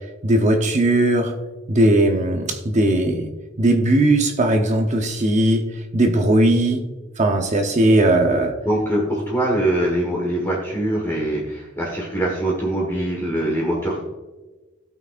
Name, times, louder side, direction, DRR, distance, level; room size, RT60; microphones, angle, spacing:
voice 1, 0.2-1.3 1.7-3.3 3.6-5.6 5.9-6.8 7.2-8.5, right 1 dB, 35° right, 4 dB, 0.8 m, -18 dB
voice 2, 8.6-14.0, right 1 dB, 15° left, -3 dB, 1.4 m, -23 dB
16.5 x 6.0 x 2.5 m, 1.2 s
head